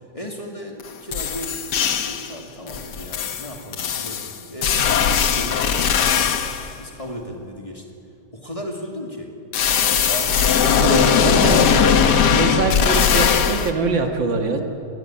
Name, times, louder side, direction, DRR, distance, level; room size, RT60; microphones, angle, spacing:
voice 1, 0.1-1.6 2.1-6.3 6.8-7.8 8.3-9.3 10.1-10.4, equal, 20° left, 1 dB, 2.3 m, -35 dB
sound 1, 0.8-0.9 1.1-2.3 2.7-6.7 9.5-13.7, left 7 dB, 65° left, 1.7 m, -19 dB
voice 2, 10.7-11.6 12.3-14.6, right 4 dB, 85° right, 4 dB, 2.6 m, -23 dB
21.5 x 17.5 x 8.8 m, 2.6 s
omnidirectional pair, 2.0 m